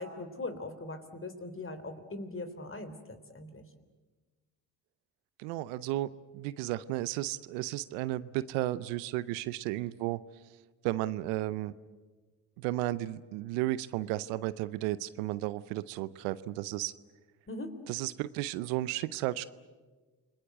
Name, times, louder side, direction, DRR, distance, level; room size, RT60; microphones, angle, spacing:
voice 1, 0.0-3.6 17.5-17.7, left 2 dB, 30° left, 9 dB, 3.5 m, -40 dB
voice 2, 5.4-6.1 6.3-10.2 10.8-11.7 12.6-16.9 17.9-19.4, right 16 dB, 90° right, 17 dB, 0.7 m, -33 dB
29.0 x 20.5 x 8.0 m, 1.3 s
hypercardioid pair, 45°, 42 cm